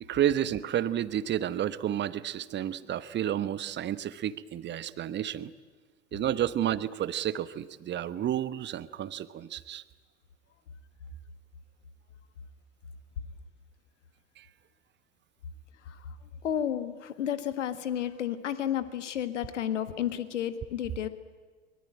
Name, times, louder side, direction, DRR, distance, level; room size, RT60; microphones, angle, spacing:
voice 1, 0.0-5.5 6.1-9.8 14.4-14.5, right 11 dB, 30° right, 16 dB, 1.1 m, -31 dB
voice 2, 15.8-16.2 16.4-21.1, left 10 dB, 75° left, 12 dB, 1.7 m, -32 dB
24.0 x 22.0 x 9.0 m, 1.4 s
figure-of-eight pair, 80°, 37 cm